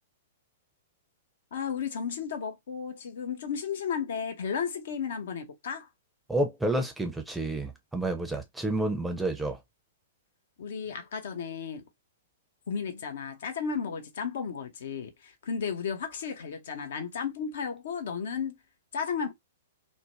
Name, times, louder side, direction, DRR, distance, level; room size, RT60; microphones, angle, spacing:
voice 1, 1.5-5.9 10.6-11.8 12.7-18.6 18.9-19.3, left 6 dB, 60° left, 0.6 m, -34 dB
voice 2, 6.3-9.6, right 1 dB, 5° right, 0.5 m, -29 dB
2.5 x 2.1 x 3.0 m
figure-of-eight pair, 105°, 0 cm